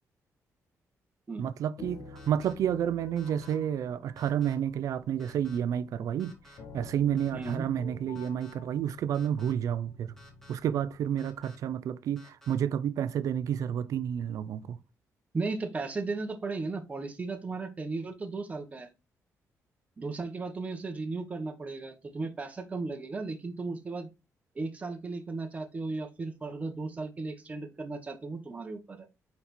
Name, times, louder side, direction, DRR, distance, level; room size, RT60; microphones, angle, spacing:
voice 1, 1.4-6.4 6.7-10.1 10.5-14.8, right 9 dB, 75° right, 0.5 m, -30 dB
sound 1, 1.8-11.4, left 4 dB, 65° left, 1.5 m, -50 dB
sound 2, 2.2-2.5 3.2-3.5 4.2-4.5 5.2-5.6 6.2-6.6 7.2-7.6 8.2-8.5 9.1-9.5 10.2-10.5 11.2-11.6 12.2-12.5, equal, 5° left, 2.2 m, -55 dB
voice 2, 7.3-7.6 15.3-18.9 20.0-24.1 24.5-29.1, right 3 dB, 25° right, 1.2 m, -35 dB
5.3 x 4.3 x 4.3 m
cardioid pair, 125°, 6 cm